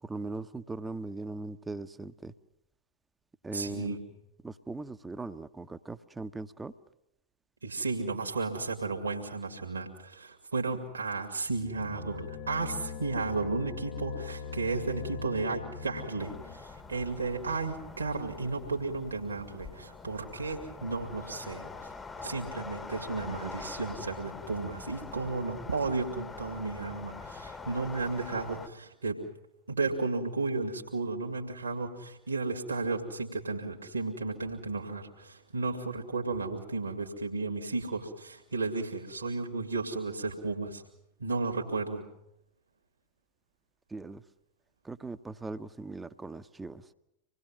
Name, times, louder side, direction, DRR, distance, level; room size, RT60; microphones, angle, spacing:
voice 1, 0.0-2.3 3.4-4.0 4.4-6.7 43.9-44.2 44.8-46.9, right 3 dB, 10° right, 13 dB, 0.9 m, -39 dB
voice 2, 3.5-4.0 7.6-21.9 22.2-29.2 29.7-40.8 41.2-42.0, right 3 dB, 75° right, 1 dB, 2.5 m, -33 dB
sound 1, 11.5-16.6, left 6 dB, 50° left, 1.1 m, -41 dB
sound 2, 16.2-28.7, left 4 dB, 15° left, 1.2 m, -44 dB
26.5 x 20.0 x 7.6 m, 0.85 s
figure-of-eight pair, 90°, 0 cm